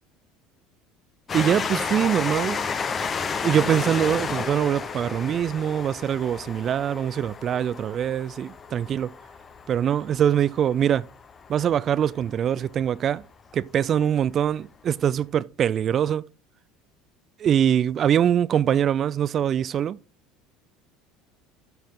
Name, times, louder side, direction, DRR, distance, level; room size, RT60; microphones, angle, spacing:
Train, 1.3-12.5 13.2-13.3 13.5-13.6, left 5 dB, 35° left, 0.8 m, -32 dB
voice 1, 1.3-2.7 3.4-9.1 9.7-11.1 11.5-13.2 13.5-16.3 17.4-20.0, right 9 dB, 45° right, 0.3 m, -23 dB
12.0 x 4.5 x 3.7 m
hypercardioid pair, 70°, 0 cm